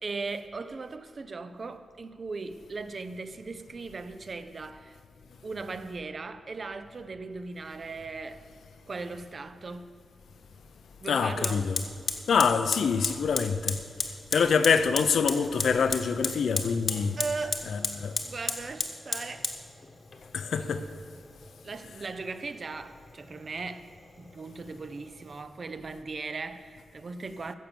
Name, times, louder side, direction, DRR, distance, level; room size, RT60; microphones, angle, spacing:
voice 1, 0.0-5.0 5.4-8.4 8.9-9.9 11.0-11.7 14.3-14.5 17.2-17.7 18.2-19.5 21.6-23.9 24.2-27.5, right 3 dB, 40° right, 0.6 m, -38 dB
Fire, 10.4-10.5 11.4-25.4, left 3 dB, 35° left, 1.2 m, -36 dB
voice 2, 11.1-11.8 12.3-13.8 14.3-17.2 17.7-18.2 20.3-20.8, left 6 dB, 75° left, 0.6 m, -25 dB
15.5 x 6.8 x 6.9 m
wide cardioid pair, 160°, 0 cm